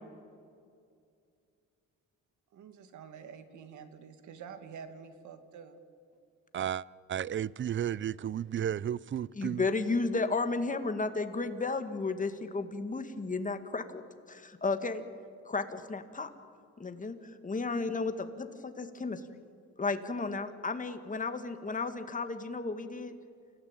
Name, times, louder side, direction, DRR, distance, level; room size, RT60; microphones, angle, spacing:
voice 1, 2.5-5.8, right 6 dB, 75° right, 9 dB, 2.4 m, -48 dB
voice 2, 7.1-9.6, right 10 dB, 40° right, 22 dB, 0.6 m, -33 dB
voice 3, 9.3-14.0 14.3-15.0 15.5-16.3 16.8-17.2 17.4-19.2 19.8-23.1, left 3 dB, 25° left, 8 dB, 2.1 m, -33 dB
28.0 x 17.0 x 9.0 m, 2.3 s
cardioid pair, 90°, 30 cm